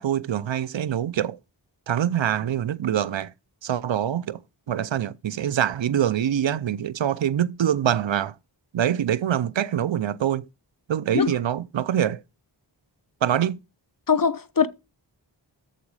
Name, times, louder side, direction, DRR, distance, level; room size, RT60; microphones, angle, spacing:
voice 1, 0.0-1.4 1.9-3.3 3.6-4.4 4.7-8.3 8.7-10.5 10.9-12.2 13.2-13.6, right 10 dB, 85° right, 0.6 m, -24 dB
voice 2, 14.1-14.7, left 6 dB, 50° left, 0.9 m, -21 dB
13.5 x 4.9 x 4.8 m
wide cardioid pair, 55°, 44 cm